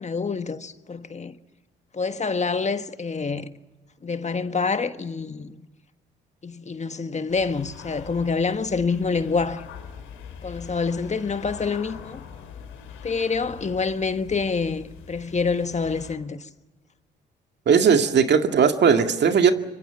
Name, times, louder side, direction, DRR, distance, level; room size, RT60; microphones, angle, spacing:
voice 1, 0.0-1.4 1.9-3.5 4.0-5.6 6.4-9.7 10.4-12.2 13.0-16.5, left 4 dB, 35° left, 1.5 m, -27 dB
sound 1, 7.3-16.2, left 7 dB, 80° left, 3.8 m, -43 dB
voice 2, 17.7-19.5, right 6 dB, 60° right, 2.1 m, -18 dB
26.0 x 24.0 x 6.9 m
hypercardioid pair, 50°, 20 cm